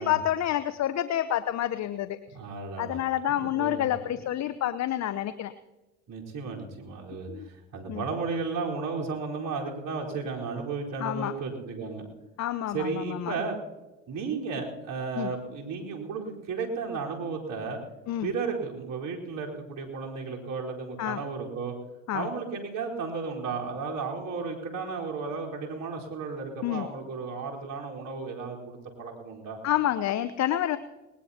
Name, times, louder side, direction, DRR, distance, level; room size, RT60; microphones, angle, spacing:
voice 1, 0.0-2.2 2.8-5.5 7.3-7.5 7.9-8.0 11.0-11.3 12.4-13.3 15.2-15.3 18.1-18.3 21.0-21.2 22.1-22.3 26.6-26.9 29.6-30.8, left 12 dB, 45° left, 13 dB, 0.8 m, -28 dB
voice 2, 2.3-3.0 3.3-4.2 4.5-4.6 6.1-12.1 12.7-13.6 14.1-17.8 18.2-21.7 22.1-29.6, right 4 dB, 55° right, -1 dB, 4.4 m, -34 dB
20.0 x 20.0 x 2.9 m, 1.1 s
hypercardioid pair, 75°, 38 cm